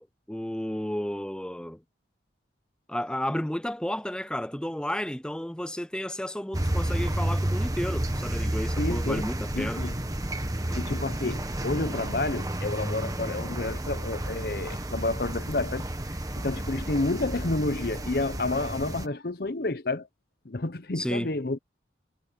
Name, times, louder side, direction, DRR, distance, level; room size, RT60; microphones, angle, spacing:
voice 1, 0.0-1.8 2.9-9.8 10.7-10.8 21.0-21.3, left 1 dB, 5° left, 0.5 m, -32 dB
sound 1, 6.5-19.1, right 1 dB, 20° right, 1.3 m, -31 dB
voice 2, 8.8-9.3 9.5-9.9 10.8-15.8 16.4-20.1 20.4-21.6, left 2 dB, 55° left, 0.8 m, -30 dB
head